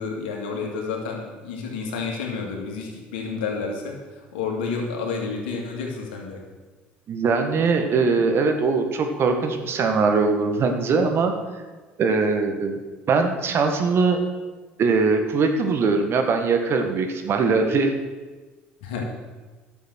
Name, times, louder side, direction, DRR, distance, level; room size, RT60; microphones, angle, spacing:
voice 1, 0.0-6.4 18.8-19.0, left 5 dB, 80° left, 1 dB, 2.3 m, -30 dB
voice 2, 7.1-11.3 12.0-12.8 13.1-14.2 14.8-17.9, right 4 dB, 50° right, 5 dB, 1.6 m, -21 dB
11.5 x 7.2 x 6.3 m, 1.3 s
hypercardioid pair, 65°, 5 cm